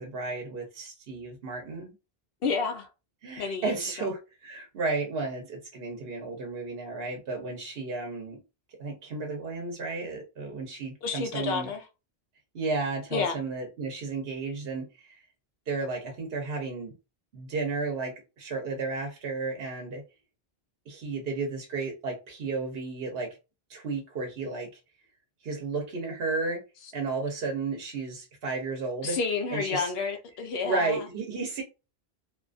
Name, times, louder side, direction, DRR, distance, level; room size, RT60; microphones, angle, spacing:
voice 1, 0.0-1.9 3.2-8.4 8.8-11.7 12.5-15.2 15.7-16.9 17.3-20.0 20.9-23.3 23.7-24.7 25.4-26.6 26.9-29.2 29.5-29.9 30.6-31.6, right 3 dB, 70° right, 1.0 m, -33 dB
voice 2, 2.4-2.9 3.4-4.1 11.0-11.8 13.1-13.4 29.0-31.0, left 5 dB, 70° left, 0.8 m, -30 dB
2.6 x 2.4 x 2.4 m
omnidirectional pair, 1.0 m